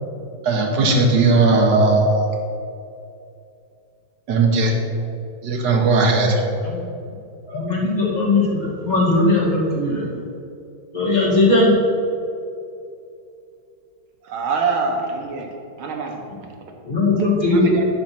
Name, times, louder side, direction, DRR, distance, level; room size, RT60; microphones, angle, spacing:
voice 1, 0.4-2.3 4.3-4.8 5.4-6.4, right 3 dB, 55° right, 0 dB, 1.9 m, -17 dB
voice 2, 6.6-7.0 7.5-10.1 10.9-11.7 16.8-17.7, left 2 dB, 20° left, -4 dB, 2.2 m, -19 dB
voice 3, 14.2-16.2 17.5-17.9, right 4 dB, 75° right, 2 dB, 1.9 m, -25 dB
10.5 x 5.3 x 6.0 m, 2.6 s
omnidirectional pair, 2.3 m